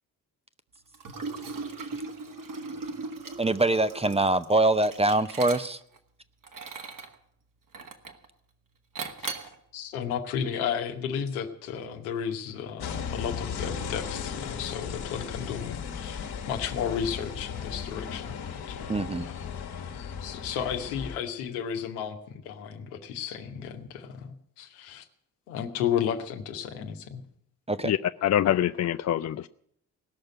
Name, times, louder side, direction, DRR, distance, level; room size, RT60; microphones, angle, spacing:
Liquid, 0.9-6.0 6.4-7.1 7.7-8.3 8.9-9.5, right 4 dB, 45° right, 1.7 m, -38 dB
voice 1, 3.4-5.8 18.9-19.3 27.7-27.9, right 2 dB, 15° right, 13 dB, 0.7 m, -24 dB
voice 2, 9.2-16.2 16.5-19.4 19.7-19.9 20.2-25.1 25.5-27.2, left 8 dB, 80° left, 5 dB, 1.2 m, -33 dB
sound 1, 12.8-21.2, left 7 dB, 60° left, 1.6 m, -36 dB
voice 3, 27.8-29.5, left 11 dB, 40° left, 11 dB, 0.5 m, -25 dB
17.5 x 6.6 x 9.0 m, 0.68 s
hypercardioid pair, 40°, 44 cm